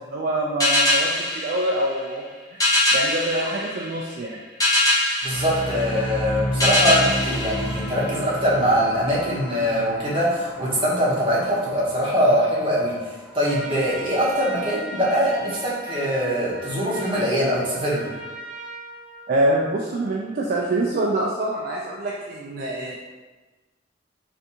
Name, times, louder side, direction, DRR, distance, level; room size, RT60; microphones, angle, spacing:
voice 1, 0.1-2.2 2.5-4.4 19.3-23.0, right 1 dB, 50° right, -3 dB, 0.3 m, -25 dB
sound 1, 0.6-8.5, left 1 dB, 20° left, 0.9 m, -23 dB
voice 2, 5.2-13.0 13.3-18.1, equal, 30° right, -7 dB, 0.9 m, -22 dB
sound 2, 5.3-13.5, equal, 10° right, 0.6 m, -32 dB
Trumpet, 13.3-19.8, right 2 dB, 65° right, 0.7 m, -38 dB
3.4 x 2.5 x 2.8 m, 1.2 s
head